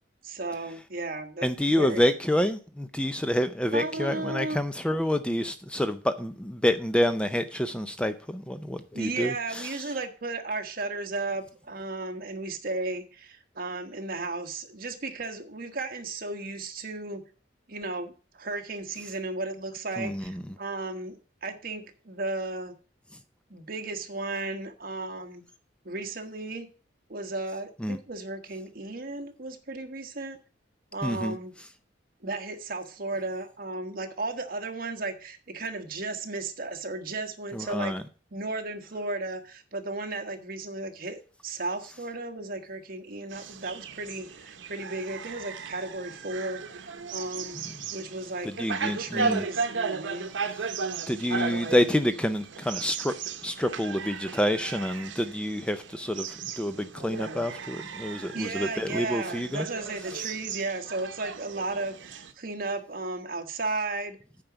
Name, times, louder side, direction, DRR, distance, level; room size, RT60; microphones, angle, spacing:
voice 1, 0.2-2.1 3.7-4.7 8.9-17.2 17.7-22.7 23.5-25.4 25.8-26.7 27.1-30.4 30.9-31.5 32.2-37.9 38.3-47.6 47.9-48.5 48.8-50.3 58.3-64.2, right 2 dB, 50° right, 1.3 m, -34 dB
voice 2, 1.4-9.7 20.0-20.4 27.8-28.0 31.0-31.4 37.5-38.0 48.4-49.4 51.1-53.1 53.4-56.3 56.6-59.7, equal, 5° left, 0.5 m, -28 dB
sound 1, 43.3-62.3, right 5 dB, 85° right, 0.9 m, -36 dB
8.9 x 5.1 x 7.0 m
head